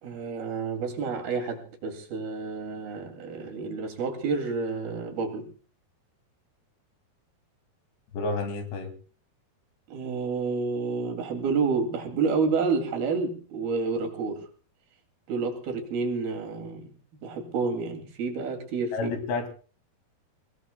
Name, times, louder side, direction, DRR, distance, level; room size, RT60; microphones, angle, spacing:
voice 1, 0.0-5.5 9.9-14.5 15.3-16.9 17.2-19.1, right 4 dB, 65° right, 3 dB, 4.5 m, -29 dB
voice 2, 8.1-8.9 18.9-19.5, left 3 dB, 90° left, 7 dB, 4.6 m, -30 dB
28.0 x 18.0 x 2.3 m, 0.40 s
omnidirectional pair, 4.7 m